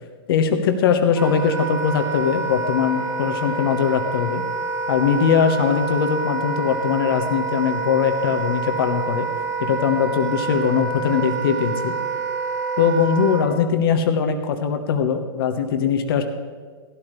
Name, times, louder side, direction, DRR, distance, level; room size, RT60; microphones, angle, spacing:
voice 1, 0.3-4.4 4.9-9.3 9.6-11.9 12.8-16.2, left 7 dB, 65° left, 7 dB, 1.2 m, -21 dB
Wind instrument woodwind instrument, 1.1-13.4, right 4 dB, 20° right, 4.5 m, -27 dB
17.0 x 12.5 x 3.3 m, 1.5 s
hypercardioid pair, 105°, 13 cm